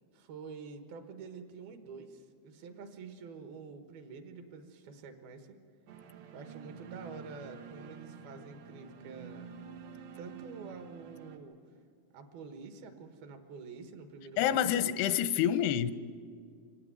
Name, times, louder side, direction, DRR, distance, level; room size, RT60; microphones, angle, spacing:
voice 1, 0.1-5.6 6.3-9.5 10.2-11.6 12.1-14.8, right 4 dB, 70° right, 7 dB, 3.2 m, -48 dB
sound 1, 5.9-11.4, right 7 dB, 90° right, 3.6 m, -48 dB
voice 2, 14.4-15.9, left 10 dB, 85° left, 13 dB, 2.8 m, -27 dB
25.0 x 16.5 x 9.5 m, 2.2 s
omnidirectional pair, 4.6 m